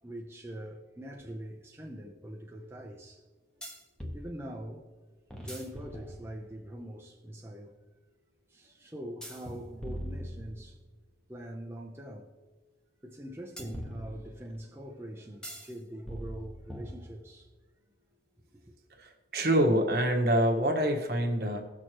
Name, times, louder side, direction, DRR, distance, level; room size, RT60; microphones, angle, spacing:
voice 1, 0.0-3.3 3.6-3.7 4.1-4.9 5.4-7.8 8.5-10.8 11.3-12.3 13.0-17.5 18.6-18.7, equal, 15° right, 0.7 m, -43 dB
sound 1, 1.2-1.3 3.6-4.2 5.3-6.6 9.2-10.9 13.6-14.6 15.4-15.7 16.1-17.4, equal, 5° left, 1.1 m, -42 dB
voice 2, 19.0-21.6, right 1 dB, 60° right, 1.5 m, -26 dB
17.0 x 6.5 x 3.0 m
head